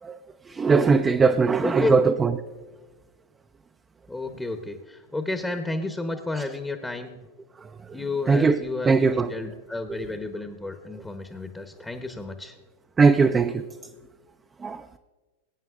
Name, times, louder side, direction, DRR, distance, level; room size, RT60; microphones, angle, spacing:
voice 1, 0.5-2.4 6.3-6.4 7.6-7.9 8.3-8.6 8.9-9.3 10.0-10.1 13.0-13.6 14.6-14.9, right 4 dB, 20° right, 0.4 m, -20 dB
voice 2, 1.6-1.9 4.1-7.1 7.9-12.6, left 2 dB, 10° left, 0.8 m, -31 dB
21.5 x 9.0 x 2.4 m
hypercardioid pair, 100°, 0 cm